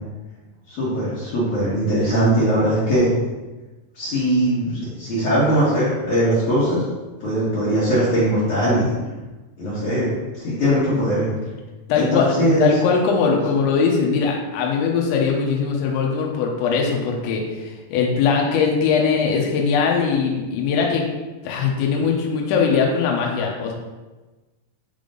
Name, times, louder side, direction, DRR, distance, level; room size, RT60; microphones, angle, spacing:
voice 1, 0.7-3.1 3.9-6.8 7.2-8.9 9.6-11.3 11.9-12.7, equal, 50° left, -10 dB, 2.5 m, -20 dB
voice 2, 11.9-21.1 21.4-23.7, left 5 dB, 80° left, -1 dB, 3.1 m, -21 dB
9.2 x 3.5 x 3.8 m, 1.2 s
omnidirectional pair, 5.4 m